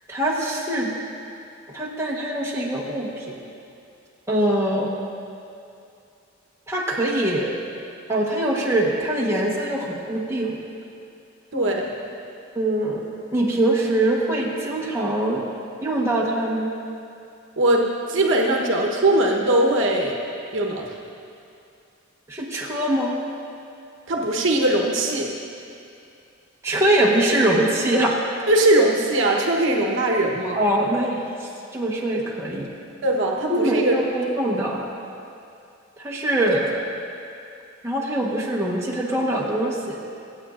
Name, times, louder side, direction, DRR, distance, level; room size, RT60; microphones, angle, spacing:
voice 1, 0.1-1.0 1.7-3.4 4.3-4.9 6.7-7.6 8.1-10.6 12.5-15.4 15.8-16.7 22.3-23.1 26.6-28.2 30.5-32.7 33.5-34.8 36.0-36.6 37.8-40.0, right 1 dB, 15° right, -4 dB, 1.2 m, -23 dB
voice 2, 11.5-12.0 17.6-20.2 20.5-20.9 24.1-25.3 28.5-30.6 33.0-34.0 36.5-36.7, right 1 dB, 65° right, 0 dB, 1.1 m, -20 dB
25.0 x 8.4 x 2.5 m, 2.6 s
head